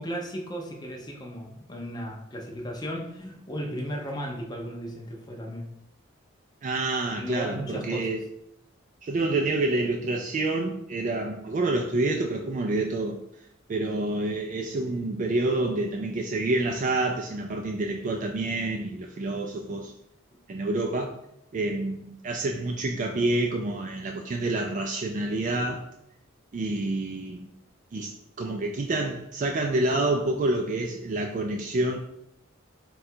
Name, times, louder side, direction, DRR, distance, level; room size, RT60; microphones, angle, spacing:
voice 1, 0.0-5.7 7.2-8.1, equal, 20° left, 0 dB, 0.5 m, -35 dB
voice 2, 6.6-8.2 9.0-13.2 13.7-19.9 20.5-21.1 21.5-25.9 26.5-27.5 27.9-28.1 28.4-32.0, right 2 dB, 40° right, 2 dB, 0.3 m, -28 dB
3.7 x 2.3 x 4.2 m, 0.80 s
head